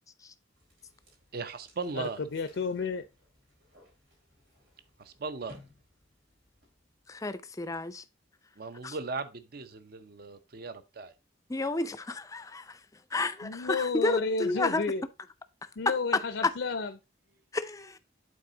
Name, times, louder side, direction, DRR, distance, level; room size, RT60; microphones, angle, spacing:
sound 1, 0.5-7.1, left 1 dB, 85° right, 4.2 m, -60 dB
voice 1, 1.3-2.2 5.0-5.6 8.6-11.1, right 4 dB, 50° right, 0.6 m, -38 dB
voice 2, 1.9-3.0 13.4-15.0 15.8-16.9, left 4 dB, 70° left, 0.5 m, -31 dB
voice 3, 7.1-8.0 8.8-9.0 11.5-12.8 13.1-14.8 16.1-16.5 17.5-18.0, left 3 dB, 15° left, 0.4 m, -31 dB
8.6 x 4.1 x 3.8 m
head